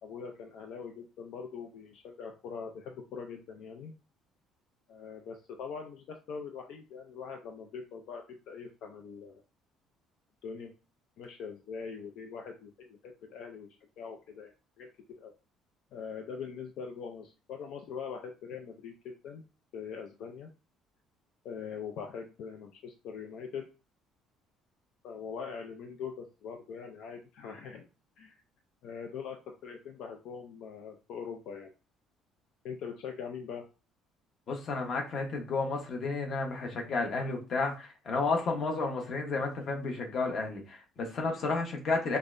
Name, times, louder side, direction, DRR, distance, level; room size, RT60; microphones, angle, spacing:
voice 1, 0.0-3.9 4.9-9.4 10.4-10.7 11.2-13.7 14.0-14.9 15.2-15.3 15.9-19.4 19.7-20.5 21.4-23.7 25.0-27.9 28.2-28.4 28.8-29.4 29.6-31.7 32.6-33.6, left 6 dB, 60° left, 3 dB, 0.5 m, -42 dB
voice 2, 34.5-42.2, left 3 dB, 35° left, 1 dB, 1.0 m, -32 dB
5.2 x 2.1 x 2.6 m, 0.33 s
cardioid pair, 170°, 0 cm